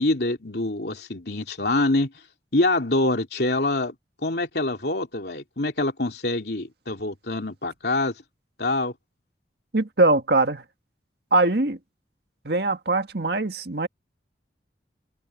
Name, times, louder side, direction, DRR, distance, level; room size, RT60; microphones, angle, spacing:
voice 1, 0.0-2.1 2.5-3.9 4.2-8.1 8.6-8.9, left 2 dB, 65° left, 3.2 m, -25 dB
voice 2, 9.7-10.6 11.3-11.8 12.5-13.9, right 2 dB, 65° right, 1.8 m, -22 dB
head